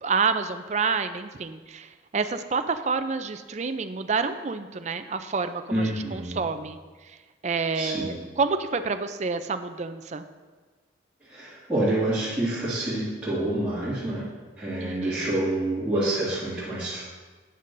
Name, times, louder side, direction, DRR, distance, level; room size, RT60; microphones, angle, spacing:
voice 1, 0.0-6.8 7.4-10.2 14.8-15.3, right 4 dB, 40° right, 9 dB, 0.4 m, -28 dB
voice 2, 5.7-6.4 7.7-8.1 11.2-14.3 14.6-17.0, right 1 dB, 5° right, -13 dB, 2.2 m, -27 dB
12.0 x 8.9 x 2.6 m, 1.4 s
head